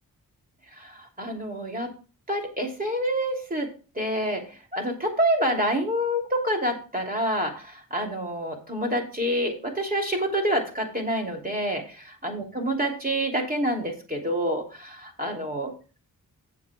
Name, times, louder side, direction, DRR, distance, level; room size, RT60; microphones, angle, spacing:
voice 1, 0.7-1.9 2.3-3.7 3.9-12.0 12.2-15.7, equal, 25° right, 2 dB, 2.9 m, -27 dB
15.5 x 7.4 x 2.4 m, 0.35 s
wide cardioid pair, 95°, 37 cm